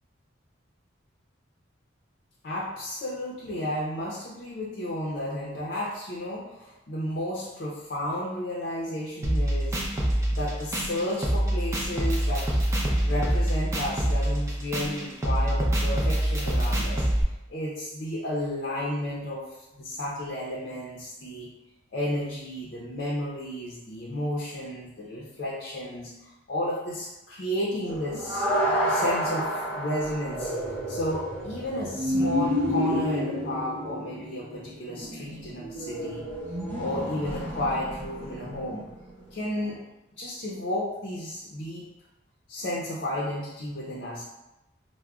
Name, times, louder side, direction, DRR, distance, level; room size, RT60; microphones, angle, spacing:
voice 1, 2.4-9.8 10.3-12.5 13.0-17.0 17.5-19.4 19.7-21.5 21.9-28.5 28.9-36.2 36.8-38.9 39.3-39.8 40.1-41.8 42.5-44.2, left 1 dB, 50° left, -4 dB, 0.5 m, -32 dB
sound 1, 9.2-17.2, right 1 dB, 15° right, 0.4 m, -25 dB
sound 2, 27.9-38.9 39.6-39.7, equal, 30° right, 0.8 m, -30 dB
4.7 x 2.0 x 2.3 m, 0.95 s
head